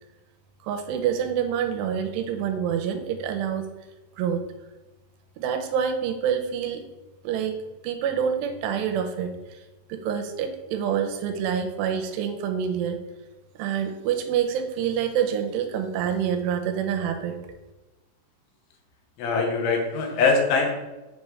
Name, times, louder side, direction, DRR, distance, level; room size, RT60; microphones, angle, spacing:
voice 1, 0.6-3.7 4.2-4.4 5.4-6.8 7.2-9.6 9.9-13.0 13.6-17.4, right 8 dB, 80° right, 5 dB, 2.8 m, -27 dB
voice 2, 19.2-20.8, left 4 dB, 75° left, 1 dB, 3.2 m, -22 dB
7.7 x 4.9 x 3.2 m, 1.1 s
omnidirectional pair, 5.0 m